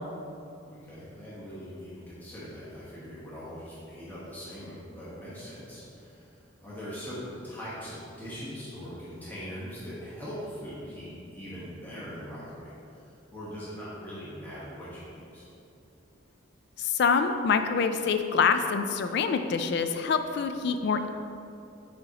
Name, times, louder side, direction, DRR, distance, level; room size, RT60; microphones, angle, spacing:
voice 1, 0.6-15.5, equal, 10° left, -10 dB, 1.2 m, -41 dB
voice 2, 16.8-21.1, left 5 dB, 60° left, 8 dB, 0.3 m, -26 dB
6.8 x 5.0 x 2.9 m, 2.7 s
head